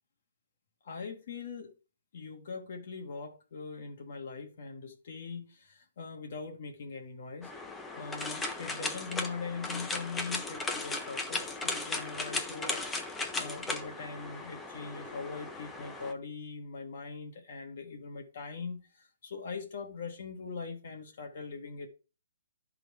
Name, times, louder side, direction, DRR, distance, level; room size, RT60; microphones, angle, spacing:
voice 1, 0.8-1.7 2.1-7.5 7.9-21.9, left 4 dB, 50° left, 1.1 m, -41 dB
sound 1, 7.4-16.1, left 3 dB, 5° left, 0.5 m, -37 dB
11.0 x 3.8 x 4.7 m
hypercardioid pair, 175°, 0 cm